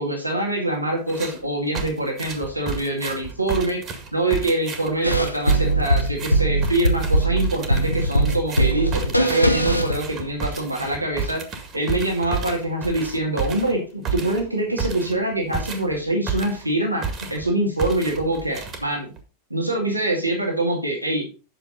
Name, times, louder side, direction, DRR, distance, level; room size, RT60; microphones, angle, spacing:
voice 1, 0.0-3.8 4.1-11.4 11.7-19.1 19.5-21.3, right 1 dB, 85° right, 0 dB, 2.2 m, -24 dB
sound 1, 1.1-1.4 1.8-16.7 17.0-17.5 17.8-19.2, right 5 dB, 30° right, 1.9 m, -32 dB
sound 2, 5.0-10.5, right 1 dB, 85° left, 0.8 m, -21 dB
9.0 x 6.6 x 4.0 m, 0.32 s
figure-of-eight pair, 90°, 0 cm